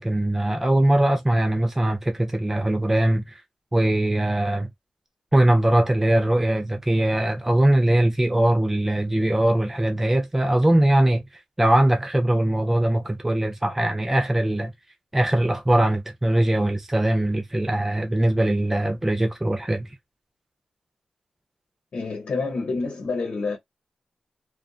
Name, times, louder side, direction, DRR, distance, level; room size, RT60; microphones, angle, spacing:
voice 1, 0.0-3.4 3.7-4.7 5.3-11.2 11.6-14.7 15.1-19.9, right 1 dB, 15° right, 0.5 m, -21 dB
voice 2, 21.9-23.6, left 3 dB, 65° left, 0.9 m, -28 dB
2.5 x 2.3 x 2.3 m
cardioid pair, 85°, 2 cm